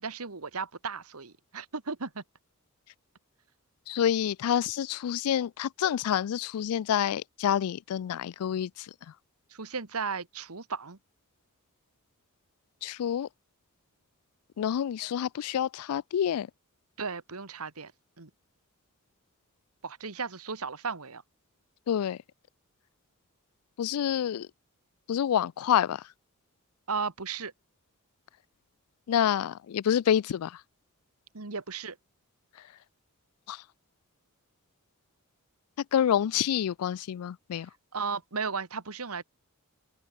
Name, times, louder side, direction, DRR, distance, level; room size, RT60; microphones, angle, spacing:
voice 1, 0.0-2.2 9.5-11.0 17.0-17.9 18.2-18.3 19.8-21.2 26.9-27.5 31.3-32.0 37.9-39.2, right 5 dB, 85° right, 1.8 m, -35 dB
voice 2, 3.9-8.7 12.8-13.3 14.6-16.5 21.9-22.2 23.8-24.5 25.1-26.0 29.1-30.5 33.5-33.6 35.9-37.7, left 9 dB, 80° left, 0.3 m, -27 dB
open air
head